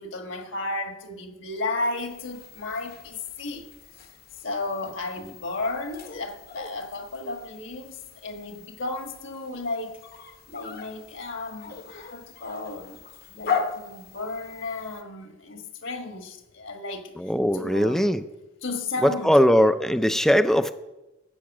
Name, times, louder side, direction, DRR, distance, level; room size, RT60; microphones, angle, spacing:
voice 1, 0.0-3.6 3.9-4.1 4.4-10.0 10.5-13.0 13.3-17.1 17.5-18.2 18.6-19.4, left 2 dB, 65° left, 1.6 m, -34 dB
sound 1, 2.0-15.0, left 5 dB, 50° left, 1.0 m, -38 dB
voice 2, 17.2-18.2 19.0-20.7, equal, ahead, 0.5 m, -20 dB
13.5 x 8.5 x 6.1 m
head